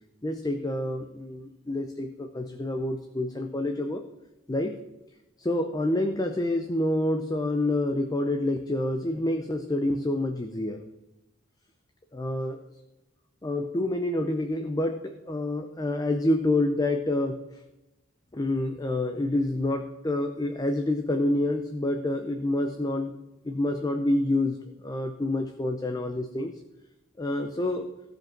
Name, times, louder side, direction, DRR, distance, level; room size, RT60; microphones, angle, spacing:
voice 1, 0.2-4.0 4.5-4.8 5.4-10.9 12.1-12.6 13.4-17.4 18.3-23.1 23.4-26.5 27.2-27.9, left 1 dB, 20° left, 5 dB, 0.5 m, -28 dB
14.5 x 5.3 x 5.9 m, 0.97 s
head